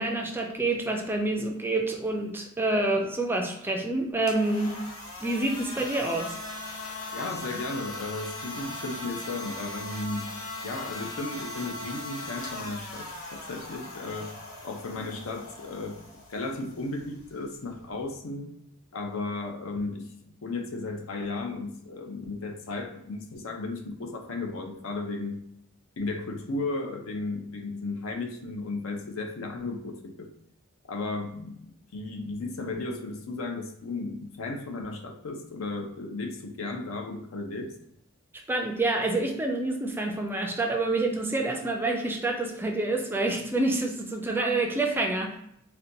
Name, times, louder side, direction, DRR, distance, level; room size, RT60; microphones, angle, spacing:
voice 1, 0.0-4.8 5.2-6.4 38.5-45.4, right 2 dB, 10° right, 2 dB, 0.4 m, -27 dB
sound 1, 4.1-18.2, left 2 dB, 85° left, 0.9 m, -40 dB
voice 2, 7.1-10.3 10.6-14.3 14.6-16.0 16.3-18.5 18.9-25.4 26.0-30.3 30.9-31.6 31.9-37.7, left 3 dB, 70° left, 4 dB, 0.6 m, -35 dB
4.2 x 2.2 x 2.6 m, 0.75 s
head